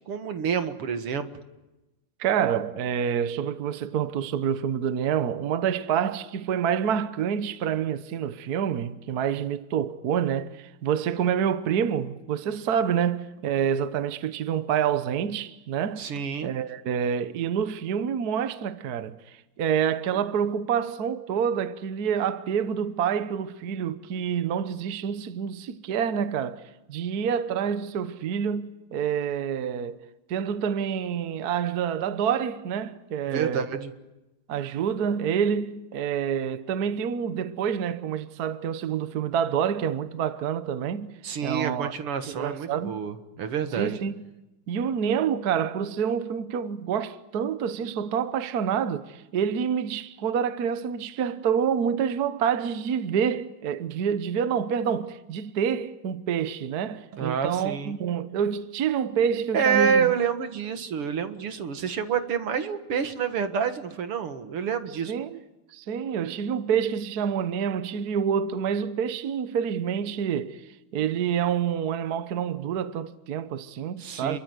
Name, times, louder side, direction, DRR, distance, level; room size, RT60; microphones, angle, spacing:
voice 1, 0.1-1.3 16.0-16.5 33.3-33.9 41.2-43.9 57.1-58.0 59.5-65.1 74.0-74.4, right 7 dB, 85° right, 2.6 m, -28 dB
voice 2, 2.2-16.0 16.4-30.0 30.3-33.7 34.5-41.1 41.4-41.9 42.3-43.0 43.8-44.2 44.7-60.1 65.1-65.4 65.7-70.6 70.9-74.4, right 8 dB, 55° right, 1.4 m, -27 dB
28.0 x 23.0 x 8.1 m
omnidirectional pair, 2.4 m